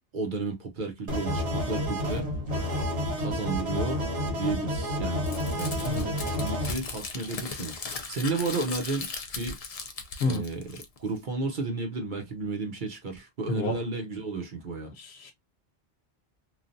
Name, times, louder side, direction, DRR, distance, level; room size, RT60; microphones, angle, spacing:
voice 1, 0.1-2.3 3.2-4.0 4.3-5.2 5.5-7.7 8.1-9.6 10.2-14.9, right 3 dB, 50° right, 0.9 m, -33 dB
sound 1, 1.1-6.7, equal, 70° right, 1.4 m, -30 dB
Crumpling crinkling, 5.2-11.2, left 4 dB, 45° left, 0.5 m, -38 dB
voice 2, 5.8-6.2 10.2-10.4 13.5-13.8 15.0-15.3, left 2 dB, 70° left, 1.0 m, -30 dB
3.1 x 2.4 x 2.5 m
omnidirectional pair, 1.2 m